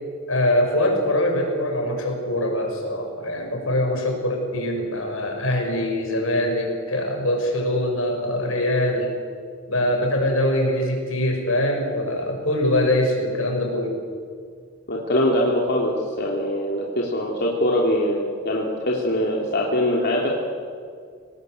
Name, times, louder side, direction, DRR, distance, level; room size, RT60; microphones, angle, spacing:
voice 1, 0.3-9.1 9.7-14.0, left 1 dB, 75° left, 2 dB, 6.2 m, -23 dB
voice 2, 14.9-20.3, left 1 dB, 55° left, -2 dB, 3.4 m, -23 dB
27.0 x 19.5 x 8.1 m, 2.1 s
head